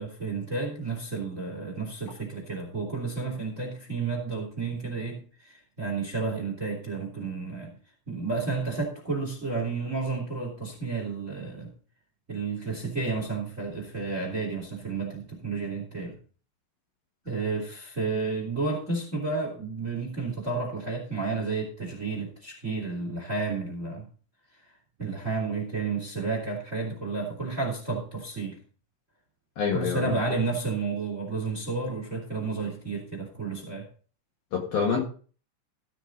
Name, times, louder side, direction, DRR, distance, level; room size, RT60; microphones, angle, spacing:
voice 1, 0.0-7.7 8.1-11.7 12.3-16.2 17.2-24.1 25.0-28.6 29.7-33.9, right 4 dB, 20° right, 1 dB, 2.5 m, -31 dB
voice 2, 29.6-30.2 34.5-35.0, left 6 dB, 55° left, -1 dB, 3.1 m, -26 dB
16.0 x 7.2 x 3.9 m, 0.40 s
omnidirectional pair, 5.9 m